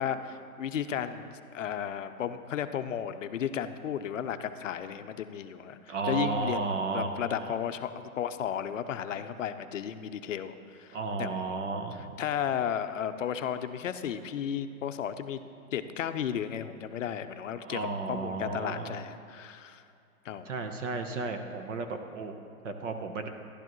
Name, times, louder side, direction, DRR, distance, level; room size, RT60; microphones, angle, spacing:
voice 1, 0.0-6.7 6.9-11.6 11.9-15.4 15.7-19.8 20.2-20.5, left 9 dB, 60° left, 10 dB, 0.6 m, -34 dB
voice 2, 5.9-7.5 10.9-12.1 17.6-19.0 20.5-23.3, right 3 dB, 55° right, 6 dB, 0.9 m, -33 dB
12.0 x 11.5 x 3.1 m, 2.5 s
hypercardioid pair, 165°, 44 cm